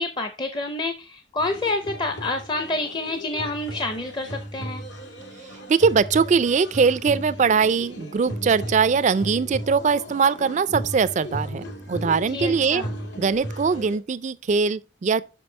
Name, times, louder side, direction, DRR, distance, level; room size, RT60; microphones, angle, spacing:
voice 1, 0.0-4.8 12.3-12.9, left 2 dB, 25° left, 0.6 m, -28 dB
sound 1, 1.4-14.0, equal, 80° left, 2.1 m, -36 dB
voice 2, 5.7-12.8 13.2-15.2, right 5 dB, 40° right, 0.3 m, -21 dB
5.9 x 5.3 x 4.3 m
head